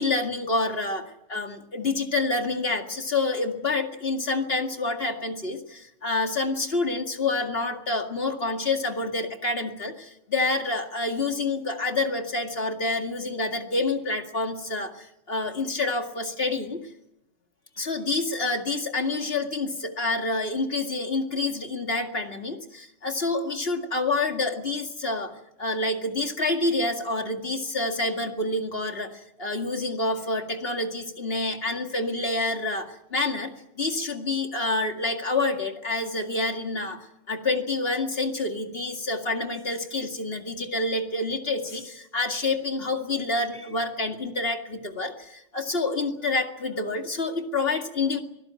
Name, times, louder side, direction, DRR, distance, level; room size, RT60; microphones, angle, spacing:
voice 1, 0.0-1.0 1.3-16.8 17.8-25.3 25.6-29.1 29.4-33.5 33.8-37.0 37.3-48.2, left 2 dB, 50° left, 5 dB, 2.4 m, -28 dB
24.5 x 17.0 x 9.0 m, 0.82 s
omnidirectional pair, 1.3 m